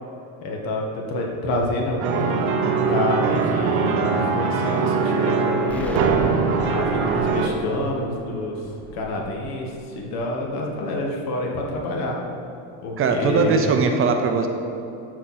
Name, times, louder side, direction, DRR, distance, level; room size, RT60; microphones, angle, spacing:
voice 1, 0.4-2.5 2.9-6.2 6.7-8.6 8.9-12.2 12.8-13.6, left 2 dB, 70° left, -1 dB, 1.7 m, -27 dB
sound 1, 2.0-7.5, right 5 dB, 80° right, 0.9 m, -22 dB
Explosion, 5.7-10.5, left 1 dB, 5° left, 0.6 m, -36 dB
voice 2, 13.0-14.5, right 4 dB, 35° right, 5 dB, 0.6 m, -20 dB
12.5 x 4.7 x 4.3 m, 2.7 s
cardioid pair, 145°, 37 cm